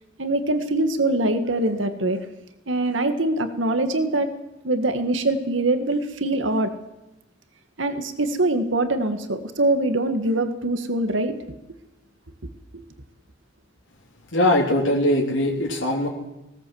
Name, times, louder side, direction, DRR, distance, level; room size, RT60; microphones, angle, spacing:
voice 1, 0.2-2.2 2.7-4.3 4.6-6.7 7.8-11.3 12.7-12.8, right 2 dB, 85° right, 8 dB, 1.9 m, -23 dB
voice 2, 14.3-16.1, left 1 dB, 80° left, -3 dB, 3.7 m, -21 dB
20.0 x 17.5 x 7.9 m, 0.95 s
head